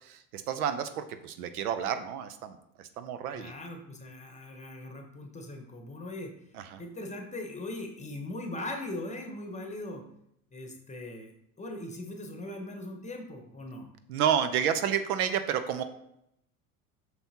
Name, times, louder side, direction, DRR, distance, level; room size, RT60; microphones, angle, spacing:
voice 1, 0.0-3.5 6.5-6.8 14.1-15.8, right 8 dB, 75° right, 10 dB, 0.7 m, -30 dB
voice 2, 3.3-6.3 6.8-10.0 10.5-13.9, left 1 dB, 15° left, 4 dB, 1.0 m, -40 dB
5.9 x 5.5 x 2.9 m, 0.77 s
hypercardioid pair, 85°, 45 cm